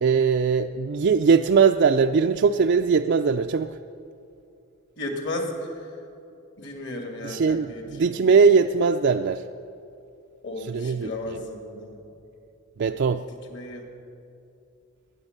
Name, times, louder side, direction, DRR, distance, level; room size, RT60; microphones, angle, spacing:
voice 1, 0.0-3.8 7.2-9.4 10.6-11.4 12.8-13.3, right 5 dB, 55° right, 6 dB, 0.4 m, -21 dB
voice 2, 5.0-5.5 6.6-8.1 10.4-12.0 13.5-13.9, left 2 dB, 55° left, 3 dB, 2.3 m, -34 dB
18.5 x 9.7 x 6.6 m, 2.6 s
head